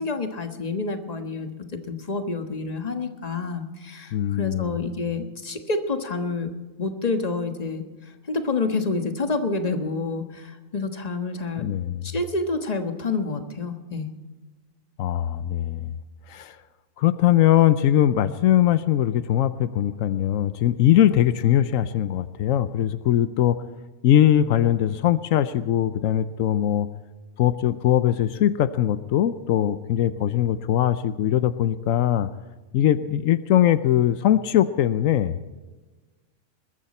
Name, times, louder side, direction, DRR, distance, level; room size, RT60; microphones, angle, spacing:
voice 1, 0.0-6.5 6.8-7.8 8.3-11.7 12.0-14.1, left 3 dB, 30° left, 6 dB, 1.4 m, -28 dB
voice 2, 4.1-4.8 11.6-12.1 15.0-15.9 16.3-16.6 17.0-23.6 24.0-26.9 27.4-32.3 32.7-35.4, left 11 dB, 85° left, 13 dB, 1.1 m, -21 dB
21.0 x 14.0 x 4.3 m, 1.3 s
omnidirectional pair, 1.3 m